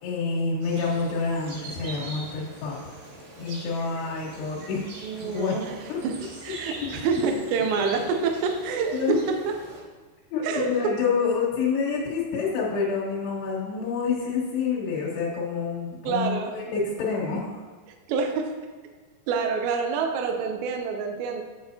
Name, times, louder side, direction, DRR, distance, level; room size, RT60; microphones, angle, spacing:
voice 1, 0.0-2.8 3.4-4.9 5.2-5.6 5.9-6.0 6.8-6.9 7.2-7.3 7.8-7.9 8.9-9.2 10.3-17.5, left 5 dB, 75° left, -5 dB, 3.5 m, -28 dB
sound 1, 0.6-9.8, right 2 dB, 60° right, 2.5 m, -42 dB
voice 2, 5.0-6.2 6.4-9.2 9.5-9.6 10.4-10.9 16.0-16.5 18.1-18.5 19.3-21.4, right 5 dB, 85° right, 4 dB, 2.9 m, -27 dB
7.9 x 7.7 x 2.8 m, 1.4 s
omnidirectional pair, 5.0 m